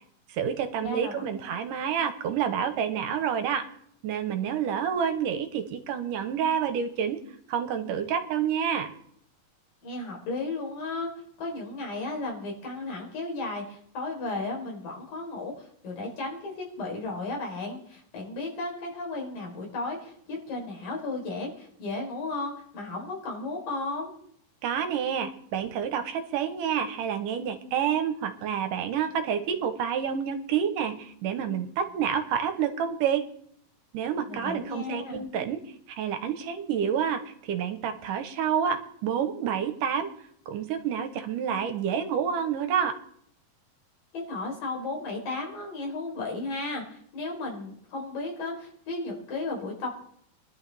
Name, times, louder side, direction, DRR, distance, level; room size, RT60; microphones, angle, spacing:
voice 1, 0.3-3.7 4.0-7.2 7.5-8.9 24.6-33.2 33.9-35.6 35.9-40.1 40.5-43.0, right 8 dB, 75° right, 8 dB, 2.6 m, -28 dB
voice 2, 0.8-1.2 9.8-11.1 11.4-24.1 34.3-35.2 44.1-49.9, left 2 dB, 80° left, 0 dB, 5.9 m, -34 dB
23.0 x 11.5 x 3.5 m, 0.64 s
omnidirectional pair, 3.9 m